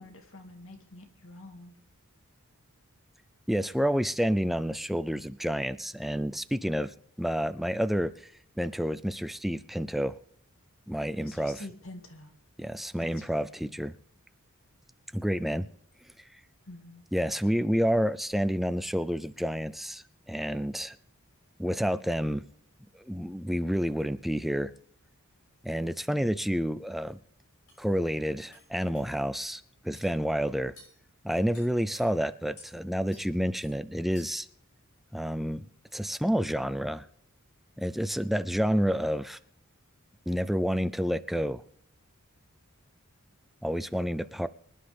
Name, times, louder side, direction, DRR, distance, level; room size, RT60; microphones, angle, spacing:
voice 1, 0.0-1.7 11.2-12.3 13.0-13.5 16.7-17.1, left 2 dB, 65° left, 2.2 m, -47 dB
voice 2, 3.5-8.3 8.6-10.2 10.9-11.6 12.6-14.0 15.1-15.7 17.1-21.0 21.6-22.4 22.9-24.7 25.6-27.2 27.8-30.7 31.2-34.5 35.1-35.7 35.9-37.1 37.8-39.4 40.3-41.6 43.6-44.5, equal, ahead, 0.4 m, -29 dB
sound 1, 27.1-27.2 27.7-27.8 28.5-28.7 28.9-29.1 30.0-30.1 30.8-31.0 31.5-32.0 32.6-32.7 33.1-33.3 33.6-33.7 34.1-34.5, left 2 dB, 85° left, 7.4 m, -53 dB
25.5 x 10.0 x 3.5 m
head